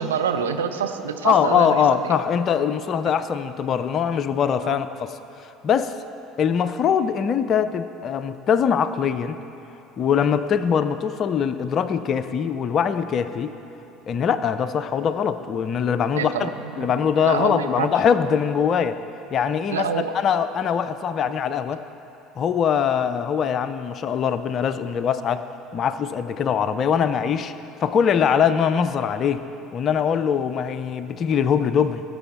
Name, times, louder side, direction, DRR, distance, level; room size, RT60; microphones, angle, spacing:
voice 1, 0.0-2.2 4.6-4.8 16.1-16.9 17.2-17.9 19.7-20.2, right 7 dB, 75° right, 7 dB, 0.5 m, -27 dB
voice 2, 1.2-5.1 5.6-5.9 6.4-9.4 10.0-13.5 14.1-16.5 16.8-19.0 19.3-19.9 20.1-21.8 22.4-25.4 25.7-27.5 27.8-29.4 29.7-32.0, left 7 dB, 40° left, 12 dB, 0.5 m, -22 dB
18.0 x 7.4 x 4.3 m, 2.9 s
figure-of-eight pair, 60°, 0 cm